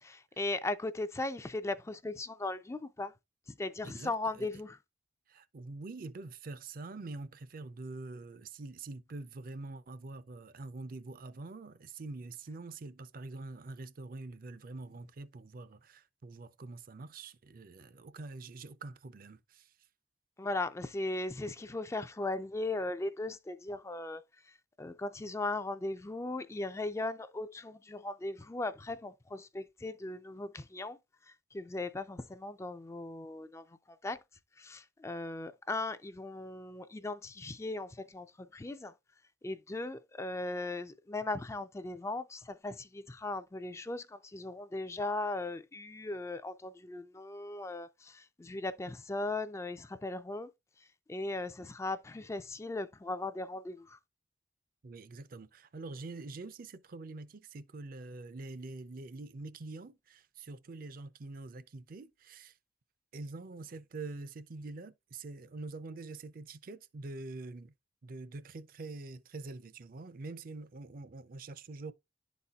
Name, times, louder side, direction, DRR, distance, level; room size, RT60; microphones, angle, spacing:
voice 1, 0.0-3.1 3.6-4.8 20.4-24.2 24.8-31.0 31.5-34.2 34.6-38.9 39.4-50.5 51.1-54.0, left 2 dB, 15° left, 0.3 m, -38 dB
voice 2, 3.8-4.5 5.3-19.7 54.8-62.5 63.1-67.7 68.0-71.9, right 3 dB, 50° right, 0.5 m, -45 dB
11.0 x 4.2 x 2.3 m
head